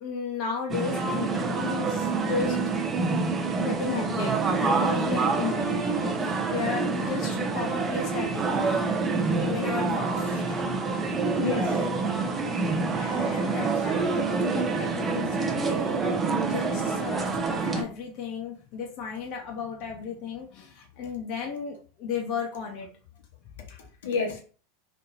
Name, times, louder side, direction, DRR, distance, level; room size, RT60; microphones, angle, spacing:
voice 1, 0.0-2.6 3.6-8.7 9.4-10.4 13.3-16.0 16.4-22.9 23.7-23.8, left 6 dB, 50° left, 0.7 m, -34 dB
sound 1, 0.7-17.8, right 4 dB, 25° right, 0.6 m, -27 dB
voice 2, 10.1-10.5 11.4-11.9 12.9-13.9 24.0-24.4, left 5 dB, 80° left, 1.0 m, -34 dB
3.1 x 2.6 x 2.6 m
hypercardioid pair, 100°, 0 cm